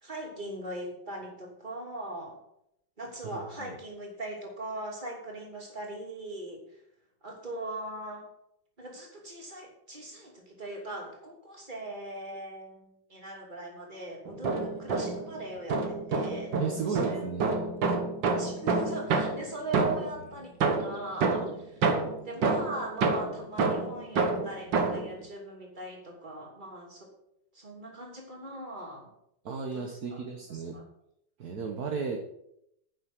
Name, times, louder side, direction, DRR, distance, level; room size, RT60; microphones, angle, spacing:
voice 1, 0.0-2.4 3.0-6.6 7.2-8.3 8.8-16.5 16.8-17.6 18.4-21.8 22.2-27.1 27.5-29.1 29.7-30.2 30.5-30.8, right 1 dB, 25° right, 0 dB, 3.1 m, -40 dB
voice 2, 3.2-3.8 16.6-17.7 29.4-30.8 31.4-32.2, right 5 dB, 55° right, 2 dB, 1.6 m, -34 dB
sound 1, 14.3-15.3 15.7-20.2 20.6-25.1, right 4 dB, 75° right, 2.0 m, -28 dB
10.5 x 6.5 x 8.1 m, 0.78 s
omnidirectional pair, 2.0 m